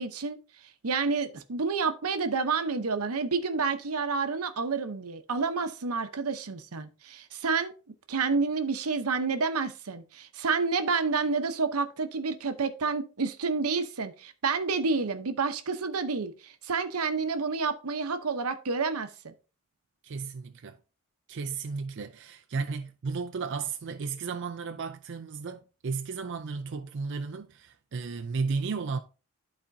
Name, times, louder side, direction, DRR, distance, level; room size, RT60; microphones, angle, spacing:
voice 1, 0.0-7.7 8.1-19.3, right 4 dB, 90° right, 0.8 m, -29 dB
voice 2, 20.0-20.8 21.3-29.0, right 4 dB, 55° right, 0.5 m, -34 dB
12.5 x 4.2 x 2.7 m
head